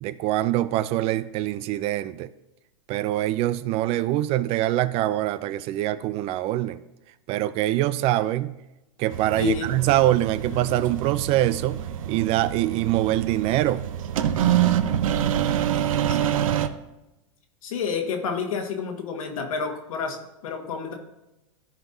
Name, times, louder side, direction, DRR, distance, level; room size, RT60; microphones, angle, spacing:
voice 1, 0.0-2.3 2.9-6.8 7.3-8.6 9.0-13.8, right 14 dB, 35° right, 0.4 m, -24 dB
sound 1, 9.1-16.7, right 10 dB, 75° right, 0.7 m, -26 dB
voice 2, 9.3-9.9 10.5-10.8 16.0-16.4 17.6-20.9, left 5 dB, 75° left, 1.6 m, -30 dB
14.5 x 5.2 x 2.7 m
hypercardioid pair, 120°, 18 cm